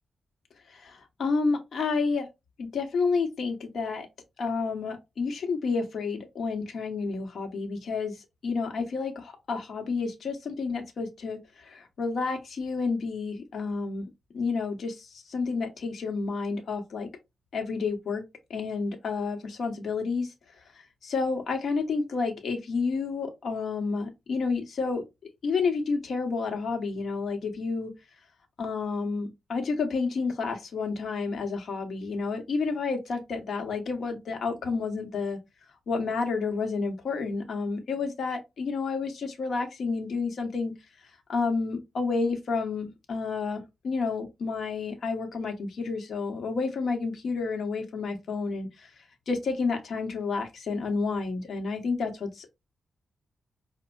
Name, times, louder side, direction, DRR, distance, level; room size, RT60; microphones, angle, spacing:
voice 1, 0.7-2.3 2.6-4.1 4.4-8.1 8.4-14.1 14.3-17.1 17.5-18.2 18.5-20.3 21.0-25.0 25.4-27.9 28.6-35.4 35.9-40.7 41.3-48.9 49.3-52.5, left 4 dB, 60° left, 0.9 m, -30 dB
5.1 x 2.1 x 2.3 m
wide cardioid pair, 135°, 0 cm